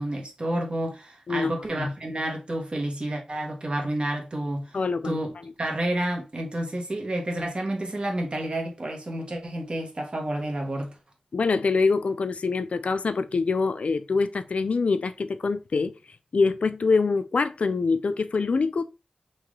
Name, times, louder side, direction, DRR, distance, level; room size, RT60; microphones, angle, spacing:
voice 1, 0.0-4.8 5.0-5.3 5.6-10.9, right 1 dB, 45° right, 1.3 m, -30 dB
voice 2, 1.3-1.9 4.7-5.2 11.3-16.0 16.3-18.8, left 4 dB, 65° left, 0.4 m, -25 dB
3.2 x 3.0 x 3.7 m
cardioid pair, 45°, 2 cm